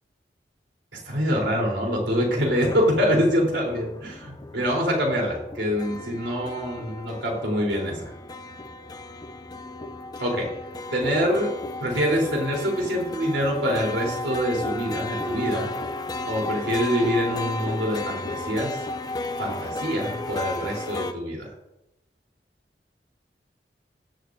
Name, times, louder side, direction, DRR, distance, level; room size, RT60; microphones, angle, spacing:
voice 1, 0.9-8.1 10.2-10.5 10.9-11.5 11.8-15.7 16.3-18.8 19.4-21.5, equal, 90° right, -1 dB, 3.7 m, -25 dB
sound 1, 2.4-21.1, left 2 dB, 20° left, 0.4 m, -34 dB
16.0 x 11.0 x 2.7 m, 0.91 s
head